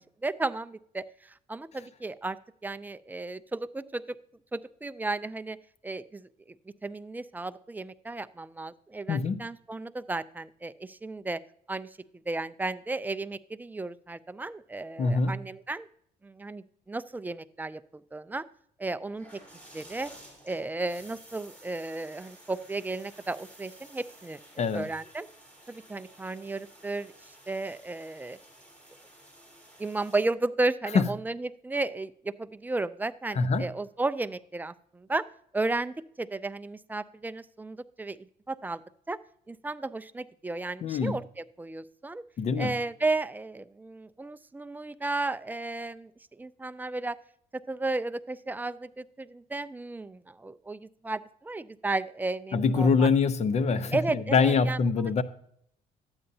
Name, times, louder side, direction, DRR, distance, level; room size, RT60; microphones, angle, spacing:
voice 1, 0.2-2.4 2.6-4.2 4.5-5.6 5.8-6.3 6.8-11.4 11.7-11.9 12.3-15.9 16.2-18.4 18.8-19.4 19.7-20.1 20.4-25.3 25.7-27.1 27.5-28.4 29.8-35.2 35.5-38.2 38.5-38.8 39.1-39.2 39.5-42.2 42.6-47.2 47.7-53.1 53.9-54.8, right 2 dB, 10° right, 13 dB, 0.3 m, -34 dB
voice 2, 9.1-9.4 15.0-15.4 24.6-24.9 30.9-31.0 33.3-33.6 40.8-41.2 42.4-42.8 52.5-55.2, left 5 dB, 40° left, 14 dB, 0.6 m, -24 dB
sound 1, 19.1-30.3, right 1 dB, 10° left, 3.3 m, -53 dB
12.0 x 8.8 x 2.7 m, 0.66 s
cardioid pair, 110°, 17 cm